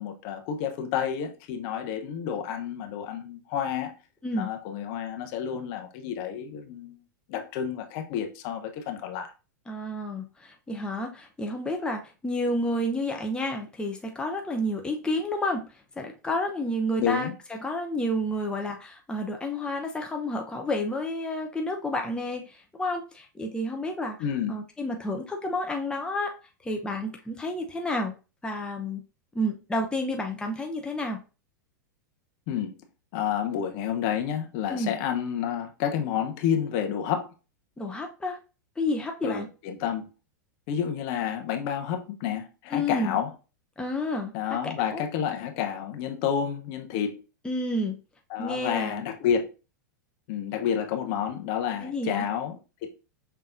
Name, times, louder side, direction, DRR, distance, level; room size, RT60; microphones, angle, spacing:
voice 1, 0.0-3.9 4.3-7.0 7.3-9.3 17.0-17.3 24.2-24.6 32.5-32.8 33.1-37.3 39.2-40.1 40.7-43.3 44.3-47.2 48.3-49.5 50.3-52.9, left 8 dB, 50° left, 0.9 m, -30 dB
voice 2, 9.7-24.2 24.5-26.3 26.6-28.1 28.4-29.0 29.3-31.2 34.7-35.0 37.8-38.4 38.8-39.5 42.7-43.2 43.8-44.3 44.6-45.0 47.4-48.0 48.4-49.0 51.8-52.3, left 1 dB, 10° left, 0.7 m, -30 dB
5.7 x 3.6 x 2.5 m
hypercardioid pair, 100°, 10 cm